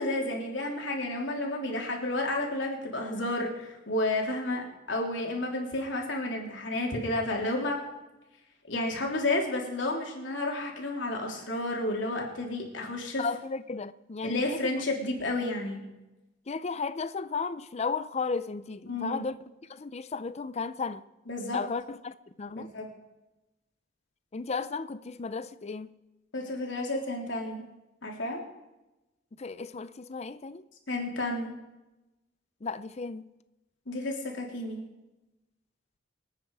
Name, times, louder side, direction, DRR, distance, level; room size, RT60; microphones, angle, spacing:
voice 1, 0.0-7.8 8.7-13.2 14.2-15.8 18.9-19.2 21.3-21.6 22.5-22.9 26.3-27.6 28.0-28.4 30.9-31.6 33.9-34.8, left 2 dB, 75° left, 3.4 m, -31 dB
voice 2, 13.2-14.6 16.5-19.3 19.7-21.0 21.5-22.7 24.3-25.9 29.4-30.6 32.6-33.2, left 4 dB, 35° left, 0.5 m, -34 dB
25.5 x 9.4 x 4.8 m
head